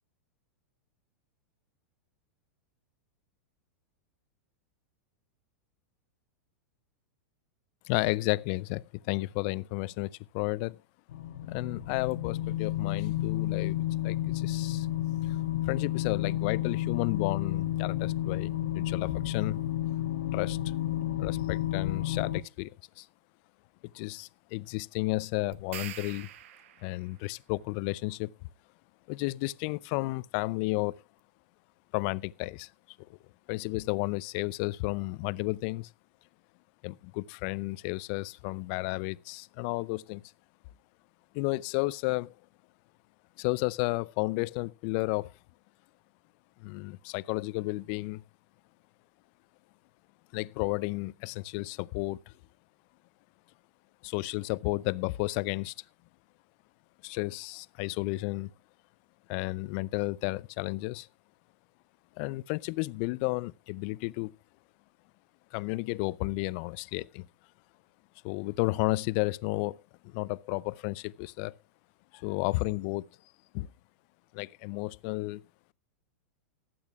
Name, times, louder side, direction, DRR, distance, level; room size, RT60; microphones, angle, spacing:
voice 1, 7.9-10.8 11.5-13.8 14.0-14.9 15.6-19.6 20.3-20.6 21.2-22.7 23.0-23.1 23.9-26.3 26.8-28.3 29.1-31.0 31.9-32.7 33.5-35.9 36.8-40.2 41.3-42.3 43.4-45.3 46.6-48.2 50.3-52.3 54.0-55.7 57.0-58.5 59.3-61.1 62.2-64.3 65.5-67.3 68.2-69.8 70.0-71.5 72.1-73.1 73.5-73.7 74.3-75.4, left 22 dB, 50° left, 0.5 m, -32 dB
sound 1, 11.1-22.4, left 13 dB, 70° left, 1.2 m, -31 dB
sound 2, 25.5-27.1, right 12 dB, 65° right, 0.8 m, -44 dB
20.0 x 8.7 x 2.4 m
hypercardioid pair, 105°, 8 cm